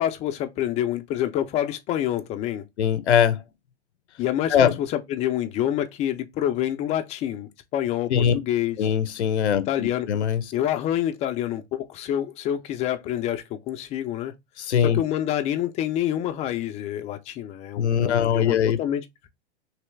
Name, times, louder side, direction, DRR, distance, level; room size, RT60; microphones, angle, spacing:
voice 1, 0.0-2.6 4.2-8.8 9.7-10.1 10.5-14.3 14.8-19.3, left 11 dB, 20° left, 0.3 m, -27 dB
voice 2, 2.8-3.4 4.5-4.7 8.1-8.3 8.8-10.4 14.6-15.0 17.8-18.8, left 8 dB, 85° left, 0.7 m, -21 dB
3.2 x 3.0 x 3.2 m
hypercardioid pair, 115°, 33 cm